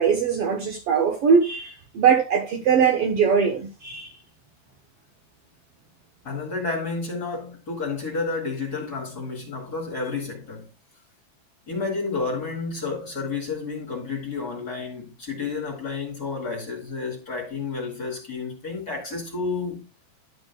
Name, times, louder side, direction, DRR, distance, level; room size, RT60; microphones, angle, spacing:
voice 1, 0.0-4.1, right 6 dB, 60° right, 1.8 m, -21 dB
voice 2, 6.2-10.7 11.7-19.9, left 4 dB, 35° left, 2.2 m, -30 dB
11.5 x 7.9 x 2.3 m
omnidirectional pair, 3.5 m